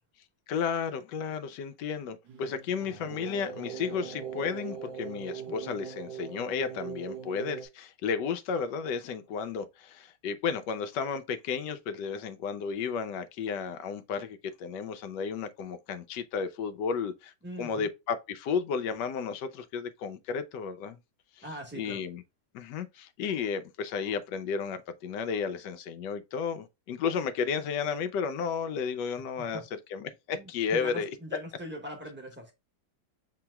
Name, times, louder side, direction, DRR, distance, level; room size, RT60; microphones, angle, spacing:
voice 1, 0.5-17.3 17.6-21.0 21.4-21.5 21.7-22.2 22.5-29.6 29.9-31.1, left 6 dB, 80° left, 1.2 m, -33 dB
sound 1, 2.3-7.7, right 7 dB, 90° right, 1.8 m, -40 dB
voice 2, 17.4-17.9 21.4-22.0 29.4-29.7 30.3-32.5, equal, 10° right, 1.0 m, -42 dB
6.8 x 2.9 x 2.2 m
omnidirectional pair, 1.9 m